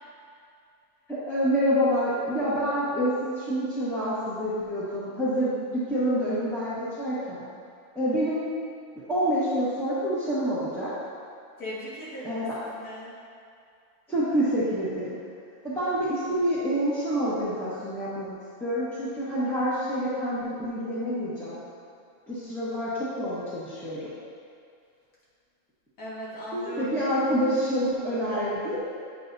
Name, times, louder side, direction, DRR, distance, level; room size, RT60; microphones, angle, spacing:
voice 1, 1.1-7.5 7.9-8.4 9.1-10.9 12.2-12.4 14.1-15.2 15.6-18.3 18.6-21.6 22.3-24.1 26.5-28.8, equal, ahead, -13 dB, 1.1 m, -27 dB
voice 2, 11.6-13.1 26.0-27.0, equal, 85° left, -8 dB, 2.3 m, -38 dB
9.0 x 5.5 x 2.7 m, 2.4 s
omnidirectional pair, 1.5 m